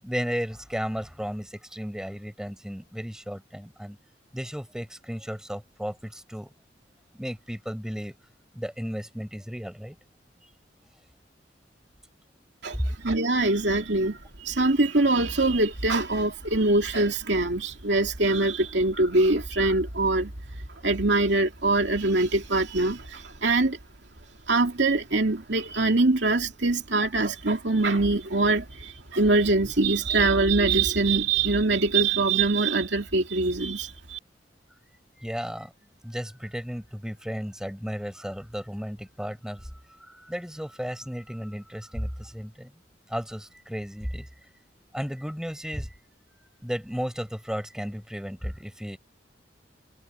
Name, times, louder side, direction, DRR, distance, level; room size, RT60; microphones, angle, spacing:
voice 1, 0.0-4.0 4.3-6.5 7.1-8.1 8.5-9.9 12.7-12.8 35.2-35.7 36.0-39.7 40.1-42.7 43.1-44.3 44.9-45.9 46.6-49.0, equal, 5° right, 6.8 m, -34 dB
voice 2, 12.6-20.3 20.8-23.8 24.5-34.2, right 2 dB, 75° right, 2.7 m, -23 dB
head